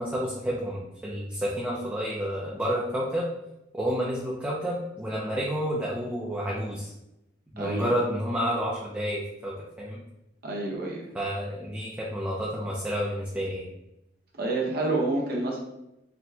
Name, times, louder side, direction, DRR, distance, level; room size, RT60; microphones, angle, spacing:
voice 1, 0.0-3.3 3.7-6.9 7.5-10.0 11.1-13.7, equal, 10° right, -5 dB, 0.4 m, -30 dB
voice 2, 7.6-7.9 10.4-11.1 14.3-15.6, right 2 dB, 55° right, -1 dB, 0.9 m, -28 dB
4.2 x 2.2 x 2.7 m, 0.87 s
head